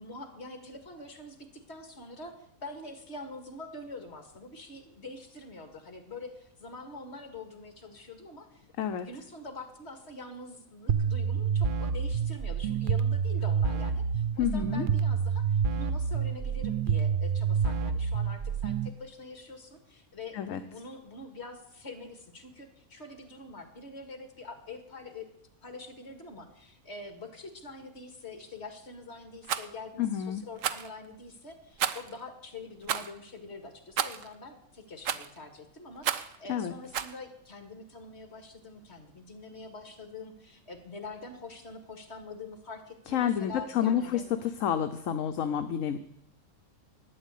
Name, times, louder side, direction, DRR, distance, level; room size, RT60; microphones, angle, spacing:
voice 1, 0.0-25.3 25.6-44.2, left 3 dB, 50° left, 6 dB, 2.3 m, -45 dB
sound 1, 10.9-18.9, right 6 dB, 50° right, 0.6 m, -28 dB
voice 2, 14.4-14.9 20.3-20.6 30.0-30.4 36.5-36.7 43.1-44.2 44.6-46.0, left 9 dB, 65° left, 8 dB, 1.1 m, -29 dB
Rattle, 29.4-29.7 30.6-30.9 31.8-32.1 32.8-33.1 34.0-34.3 35.0-35.4 36.0-36.4 36.9-37.2, right 9 dB, 65° right, 1.1 m, -31 dB
12.0 x 9.5 x 8.3 m, 0.74 s
omnidirectional pair, 1.5 m